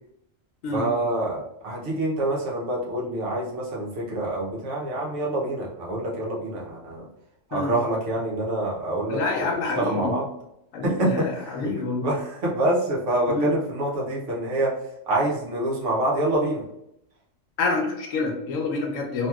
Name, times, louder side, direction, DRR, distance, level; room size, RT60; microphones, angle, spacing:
voice 1, 0.7-7.1 7.5-10.2 10.8-11.7 12.0-14.7 15.1-16.6, right 1 dB, 65° right, -3 dB, 1.1 m, -26 dB
voice 2, 9.1-10.1 10.7-12.1 13.3-13.5 17.6-19.3, left 3 dB, 80° left, 2 dB, 1.0 m, -27 dB
2.9 x 2.8 x 2.3 m, 0.80 s
omnidirectional pair, 1.4 m